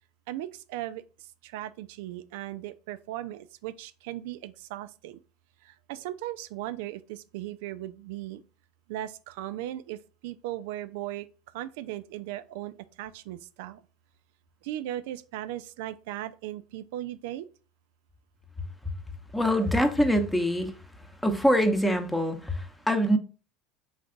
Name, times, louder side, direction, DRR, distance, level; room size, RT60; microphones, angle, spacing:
voice 1, 0.3-1.0 1.4-5.2 5.6-8.4 8.9-10.0 10.2-11.3 11.5-13.8 14.6-17.5, right 13 dB, 70° right, 0.3 m, -37 dB
voice 2, 19.3-20.8 21.2-23.2, equal, 5° left, 0.8 m, -24 dB
3.9 x 3.3 x 3.8 m
hypercardioid pair, 80°, 0 cm